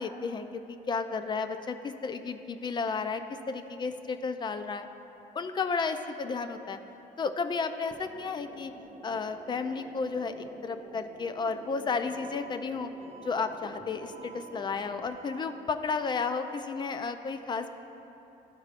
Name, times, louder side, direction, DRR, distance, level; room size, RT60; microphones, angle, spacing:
voice 1, 0.0-4.9 5.3-6.8 7.2-8.7 9.0-12.9 13.2-17.7, left 4 dB, 25° left, 9 dB, 0.4 m, -33 dB
sound 1, 7.9-15.1, right 3 dB, 25° right, 0.5 m, -49 dB
Alarm, 12.0-12.5 13.0-13.5 14.0-14.5 15.0-15.5 16.0-16.5, right 6 dB, 40° right, 0.9 m, -50 dB
12.5 x 4.7 x 2.5 m, 3.0 s
cardioid pair, 110°, 17 cm